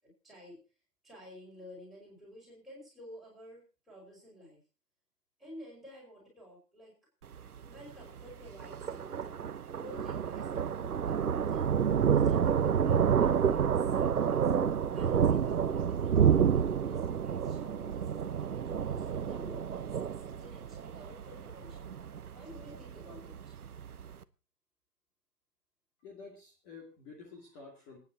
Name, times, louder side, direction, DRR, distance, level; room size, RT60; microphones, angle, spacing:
voice 1, 0.0-0.6 1.0-3.6 3.9-4.6 5.4-6.9 7.6-9.5 9.8-11.7 12.0-14.5 14.9-16.2 16.5-21.9 22.3-23.6, equal, ahead, -5 dB, 5.3 m, -52 dB
Thunder, 7.2-24.1, right 8 dB, 65° right, 1.0 m, -29 dB
voice 2, 26.0-28.0, left 4 dB, 15° left, -1 dB, 2.3 m, -50 dB
27.5 x 9.6 x 2.8 m, 0.32 s
hypercardioid pair, 155°, 48 cm